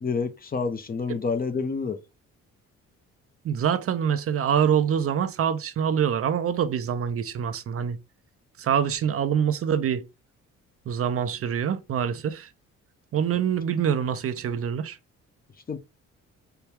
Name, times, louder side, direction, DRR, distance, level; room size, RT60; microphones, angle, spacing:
voice 1, 0.0-2.0 15.7-15.8, left 4 dB, 30° left, 0.7 m, -28 dB
voice 2, 3.4-8.0 8.6-10.0 10.9-12.5 13.1-15.0, right 8 dB, 50° right, 0.5 m, -25 dB
4.5 x 2.3 x 3.3 m
cardioid pair, 90°, 30 cm